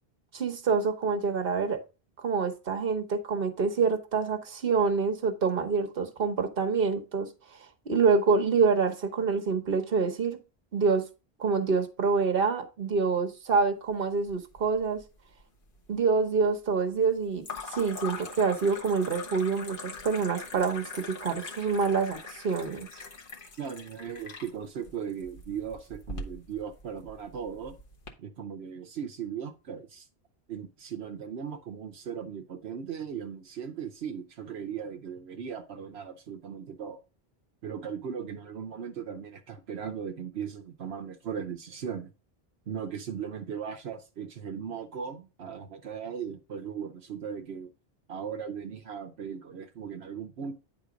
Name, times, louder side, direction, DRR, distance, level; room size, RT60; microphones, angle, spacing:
voice 1, 0.3-1.8 2.2-7.3 7.9-10.4 10.7-11.0 11.4-15.0 15.9-22.9, right 5 dB, 65° right, 1.3 m, -26 dB
sound 1, 14.3-15.0 15.3-16.0 17.4-28.1, left 3 dB, 55° left, 1.4 m, -42 dB
voice 2, 23.6-27.7 28.2-30.1 30.5-37.0 37.6-42.1 42.7-47.7 48.1-50.5, right 7 dB, 85° right, 1.1 m, -38 dB
9.6 x 3.8 x 5.0 m
omnidirectional pair, 1.0 m